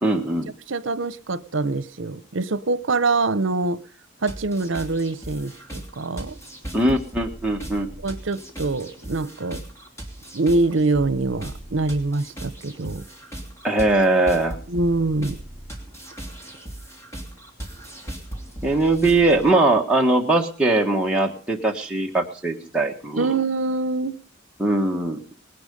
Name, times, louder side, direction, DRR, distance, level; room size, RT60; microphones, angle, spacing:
voice 1, 0.0-0.5 6.7-7.9 13.6-14.6 18.6-23.3 24.6-25.2, right 2 dB, 5° right, 1.5 m, -20 dB
voice 2, 0.7-3.8 4.2-6.4 8.0-9.6 10.3-13.1 14.7-15.4 23.2-24.2, right 3 dB, 70° right, 0.9 m, -24 dB
sound 1, 4.3-19.5, right 1 dB, 15° left, 3.1 m, -38 dB
19.5 x 11.5 x 5.4 m
head